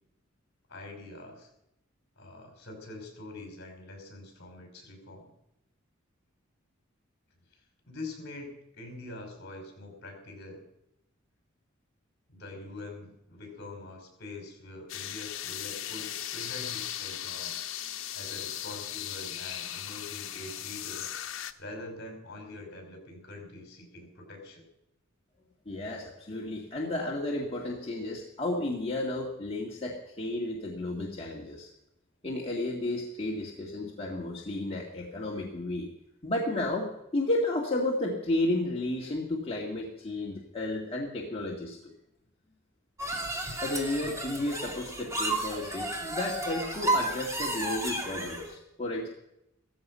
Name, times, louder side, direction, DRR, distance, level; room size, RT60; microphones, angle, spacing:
voice 1, 0.7-1.5 2.2-5.3 7.5-10.6 12.3-17.6 18.1-21.1 21.6-24.7, left 2 dB, 55° left, 3 dB, 5.4 m, -44 dB
sound 1, 14.9-21.5, left 11 dB, 75° left, 1.0 m, -37 dB
voice 2, 25.7-31.7 32.2-35.9 36.2-41.9 43.6-49.1, left 2 dB, 30° left, -2 dB, 2.1 m, -32 dB
sound 2, 43.0-48.5, right 1 dB, 15° right, 2.5 m, -32 dB
16.0 x 15.0 x 5.7 m, 0.84 s
head